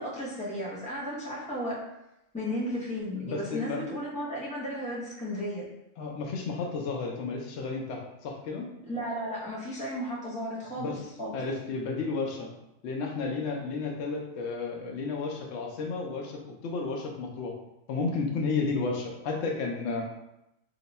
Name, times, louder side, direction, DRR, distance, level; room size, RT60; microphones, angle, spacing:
voice 1, 0.0-1.8 2.3-5.7 8.9-11.4, equal, 5° left, -6 dB, 0.6 m, -34 dB
voice 2, 3.2-3.8 6.0-8.7 10.8-12.5 12.8-17.5 17.9-20.1, left 4 dB, 65° left, 0 dB, 0.8 m, -32 dB
2.8 x 2.2 x 4.0 m, 0.88 s
omnidirectional pair, 1.4 m